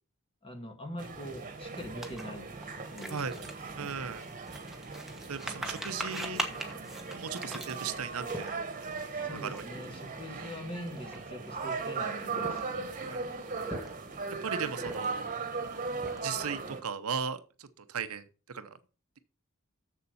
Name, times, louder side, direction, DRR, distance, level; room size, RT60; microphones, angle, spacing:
voice 1, 0.4-2.4 2.9-3.9 9.1-12.9, equal, 25° left, 5 dB, 1.8 m, -43 dB
sound 1, 1.0-16.8, right 4 dB, 40° right, 1.4 m, -38 dB
sound 2, 2.0-8.9 9.4-9.6 9.9-10.1 10.8-11.6 12.2-12.9 13.5-14.2 14.8-15.3 15.7-16.5, right 1 dB, ahead, 1.2 m, -41 dB
voice 2, 3.8-4.2 5.3-6.4 7.1-8.6 9.3-9.6 10.3-10.5 12.9-13.3 14.3-15.3 16.2-18.8, right 6 dB, 80° right, 12 dB, 0.8 m, -37 dB
7.4 x 6.9 x 5.4 m, 0.35 s
head